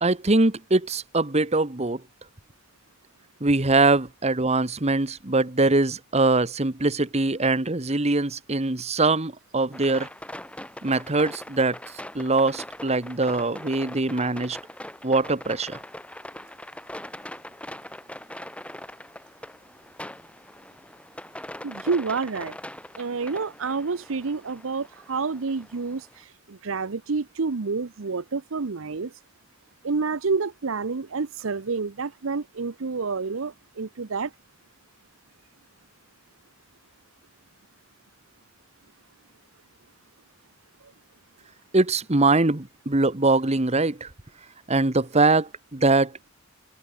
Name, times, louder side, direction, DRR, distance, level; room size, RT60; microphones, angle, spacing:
voice 1, 0.0-2.0 3.4-10.1 10.8-11.8 12.1-14.6 15.0-15.8 41.7-44.1 44.7-46.1, right 3 dB, 30° right, 1.4 m, -22 dB
sound 1, 9.7-26.2, left 1 dB, 5° left, 7.0 m, -41 dB
voice 2, 21.6-22.6 23.0-29.1 29.8-34.3, right 4 dB, 75° right, 0.8 m, -29 dB
head